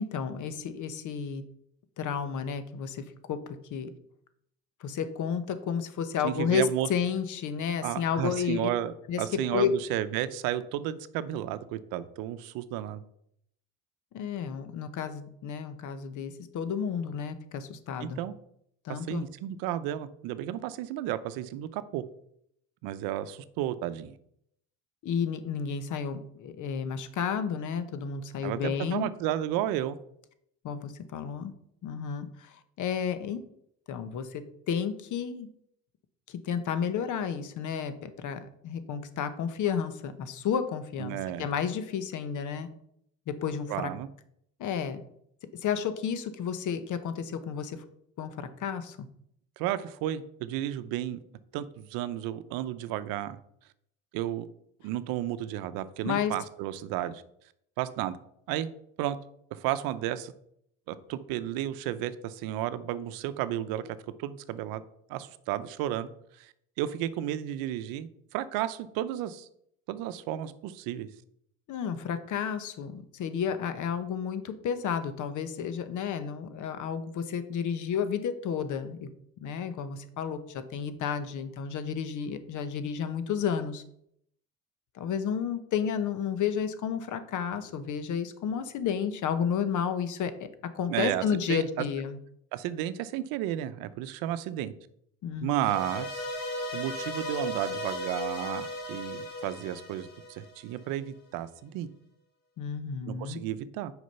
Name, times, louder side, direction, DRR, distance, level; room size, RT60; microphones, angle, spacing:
voice 1, 0.0-1.4 2.0-3.9 4.8-8.7 9.1-9.2 9.5-9.8 14.1-18.2 18.8-19.2 25.0-29.1 30.6-31.5 31.8-33.4 33.9-35.5 36.3-42.7 43.3-43.9 44.6-45.0 45.6-47.8 48.2-49.1 56.0-56.3 71.7-79.1 79.4-83.8 84.9-90.5 90.7-92.2 95.2-95.7 102.6-103.4, left 7 dB, 60° left, 12 dB, 1.0 m, -32 dB
voice 2, 6.2-6.9 7.8-13.0 18.0-18.3 18.9-22.0 22.8-24.1 28.4-30.0 41.0-41.5 43.7-44.1 49.6-51.2 51.5-53.4 54.1-54.5 54.8-57.2 57.8-58.2 58.5-58.7 59.0-59.2 59.5-60.3 60.9-63.8 64.2-64.8 65.1-66.1 66.4-69.5 69.9-71.1 90.9-91.8 92.5-94.7 95.4-96.2 96.7-101.9 103.1-103.9, right 12 dB, 80° right, 13 dB, 0.7 m, -32 dB
sound 1, 95.5-100.8, left 1 dB, 75° left, 2.5 m, -36 dB
6.4 x 5.1 x 5.5 m, 0.72 s
supercardioid pair, 85°, 35 cm